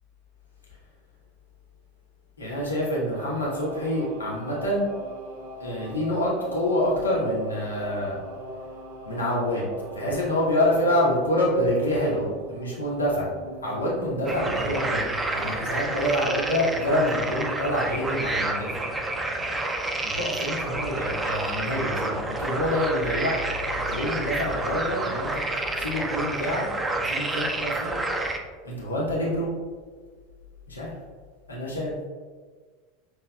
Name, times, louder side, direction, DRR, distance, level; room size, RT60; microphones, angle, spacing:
voice 1, 2.4-4.9 5.6-8.2 9.0-9.7 9.9-13.3 13.6-18.8 20.0-25.4 25.7-28.1 28.6-29.5 30.7-30.9 31.5-32.0, left 1 dB, 80° left, -4 dB, 1.1 m, -27 dB
sound 1, 3.1-18.4, left 1 dB, 60° right, 0.7 m, -41 dB
sound 2, 14.3-28.4, right 2 dB, 15° right, 0.5 m, -29 dB
5.9 x 3.2 x 2.3 m, 1.5 s
figure-of-eight pair, 80°, 0 cm